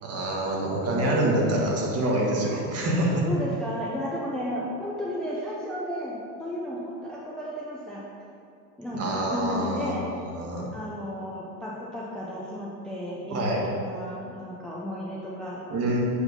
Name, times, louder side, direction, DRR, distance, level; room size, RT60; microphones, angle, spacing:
voice 1, 0.0-3.2 8.9-10.0 10.3-10.7 13.3-13.6 15.7-16.0, right 1 dB, 30° right, -2 dB, 1.6 m, -26 dB
voice 2, 0.9-1.6 3.3-8.0 8.8-10.0 10.7-15.6, equal, ahead, -6 dB, 0.8 m, -33 dB
7.6 x 5.0 x 5.4 m, 2.6 s
supercardioid pair, 125°, 47 cm